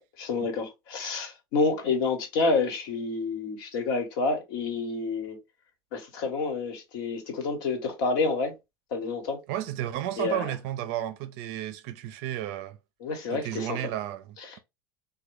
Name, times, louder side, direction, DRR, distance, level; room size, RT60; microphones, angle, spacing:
voice 1, 0.0-5.4 5.9-8.5 8.9-9.4 10.2-10.5 13.0-13.8 14.4-14.6, left 3 dB, 70° left, 1.2 m, -29 dB
voice 2, 9.5-12.8 13.3-14.6, right 12 dB, 60° right, 0.5 m, -33 dB
3.4 x 2.2 x 3.1 m
hypercardioid pair, 90°, 12 cm